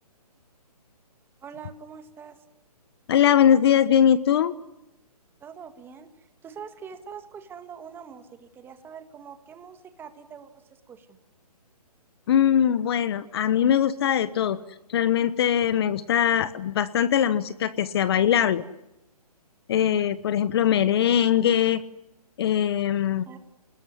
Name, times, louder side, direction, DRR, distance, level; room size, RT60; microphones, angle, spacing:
voice 1, 1.4-2.4 5.4-11.2 23.3-23.4, right 7 dB, 10° right, 9 dB, 1.9 m, -44 dB
voice 2, 3.1-4.5 12.3-14.6 14.9-18.6 19.7-21.8 22.4-23.3, left 9 dB, 40° left, 15 dB, 1.1 m, -21 dB
27.5 x 21.0 x 9.7 m, 0.88 s
hypercardioid pair, 150°, 20 cm